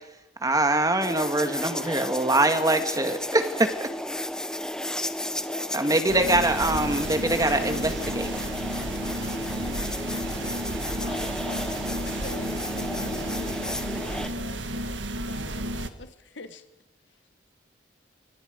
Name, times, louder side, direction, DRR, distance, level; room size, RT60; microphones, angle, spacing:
voice 1, 0.4-3.9 5.7-8.3, right 2 dB, 20° right, 7 dB, 1.9 m, -23 dB
sound 1, 1.0-14.3, left 1 dB, 5° left, 1.2 m, -33 dB
voice 2, 5.3-6.0 9.6-10.6 10.9-11.6 11.9-12.1, left 2 dB, 70° left, 5 dB, 3.1 m, -45 dB
sound 2, 6.1-15.9, right 1 dB, 85° right, 1.6 m, -32 dB
voice 3, 12.1-15.0 15.3-16.6, left 2 dB, 85° left, 9 dB, 1.6 m, -43 dB
26.5 x 24.0 x 5.2 m, 0.93 s
head